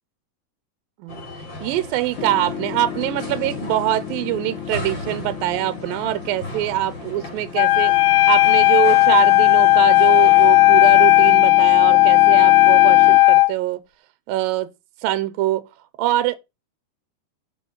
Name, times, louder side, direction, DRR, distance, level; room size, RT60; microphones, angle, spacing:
sound 1, 1.1-11.3, left 1 dB, 30° left, 3.6 m, -37 dB
voice 1, 1.6-7.9 8.3-13.8 14.3-14.7 15.0-15.6 16.0-16.4, right 14 dB, 80° right, 2.6 m, -23 dB
Piano, 2.2-13.2, left 10 dB, 60° left, 1.3 m, -35 dB
Wind instrument woodwind instrument, 7.6-13.5, left 18 dB, 85° left, 1.7 m, -13 dB
9.0 x 5.3 x 5.5 m
omnidirectional pair, 4.2 m